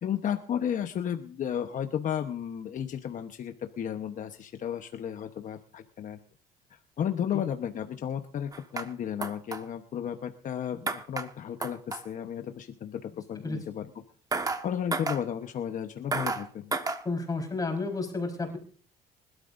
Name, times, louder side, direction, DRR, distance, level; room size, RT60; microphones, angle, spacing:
voice 1, 0.0-6.2 6.7-13.9 14.6-16.7, left 9 dB, 50° left, 6 dB, 1.0 m, -33 dB
sound 1, 8.5-8.9 9.2-9.6 10.9-11.3 11.6-12.0 14.3-14.6 14.9-15.2 16.1-16.4 16.7-17.0, right 3 dB, 20° right, 1.4 m, -31 dB
voice 2, 17.0-18.6, left 3 dB, 20° left, 1 dB, 4.5 m, -31 dB
24.5 x 12.5 x 2.6 m, 0.41 s
cardioid pair, 110°, 17 cm